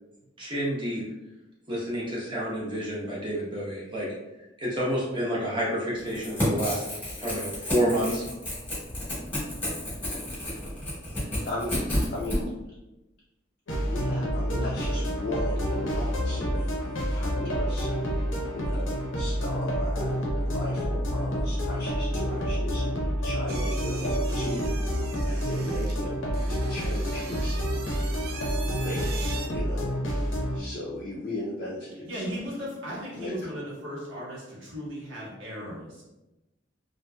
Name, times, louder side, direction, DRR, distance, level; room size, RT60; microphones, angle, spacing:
voice 1, 0.4-1.0 1.7-4.1 4.6-6.8 7.2-8.2, equal, 25° right, -6 dB, 0.8 m, -29 dB
Crackle / Tearing, 6.0-12.4, left 1 dB, 10° left, 1.1 m, -31 dB
voice 2, 11.4-12.5 13.9-16.7 17.1-24.6 25.1-27.6 28.7-29.1 29.5-29.9 30.5-32.2 33.1-33.4, left 1 dB, 50° left, -6 dB, 0.5 m, -37 dB
sound 1, 13.7-30.6, equal, 85° left, 0.7 m, -28 dB
sound 2, 23.5-29.5, right 5 dB, 55° right, 0.4 m, -42 dB
voice 3, 32.0-36.0, equal, 85° right, -7 dB, 1.3 m, -36 dB
2.8 x 2.5 x 2.2 m, 0.99 s
head